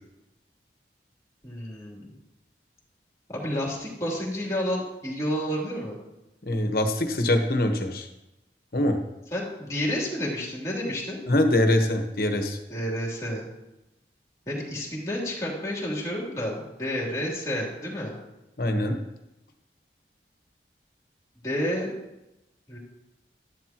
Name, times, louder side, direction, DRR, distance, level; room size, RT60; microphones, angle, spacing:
voice 1, 1.4-2.1 3.3-6.0 9.3-11.2 12.7-13.5 14.5-18.2 21.4-21.9 22.7-22.8, equal, 20° left, -3 dB, 3.1 m, -30 dB
voice 2, 6.4-8.1 8.7-9.0 11.3-12.6 18.6-19.0, left 1 dB, 55° left, 4 dB, 1.2 m, -23 dB
12.0 x 11.5 x 3.0 m, 0.94 s
head